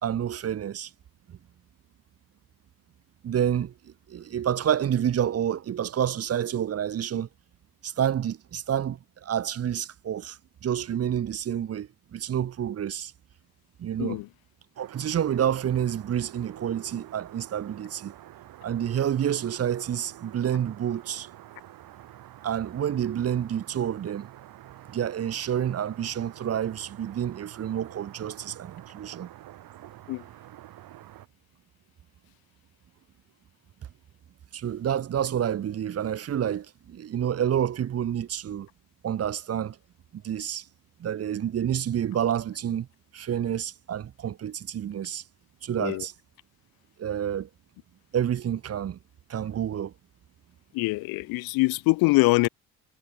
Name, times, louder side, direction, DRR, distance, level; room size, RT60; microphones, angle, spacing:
voice 1, 0.0-0.9 1.3-1.4 3.2-7.3 7.8-13.1 13.8-14.2 14.8-18.1 18.6-21.3 22.4-24.3 24.9-29.3 34.5-38.7 39.0-39.8 40.1-40.6 41.0-42.9 43.1-45.2 45.6-46.1 47.0-47.5 48.1-49.0 49.3-49.9, right 9 dB, 40° right, 0.8 m, -29 dB
sound 1, 14.7-31.3, right 14 dB, 65° right, 1.7 m, -48 dB
voice 2, 50.7-52.5, left 23 dB, 75° left, 0.5 m, -23 dB
supercardioid pair, 75°, 37 cm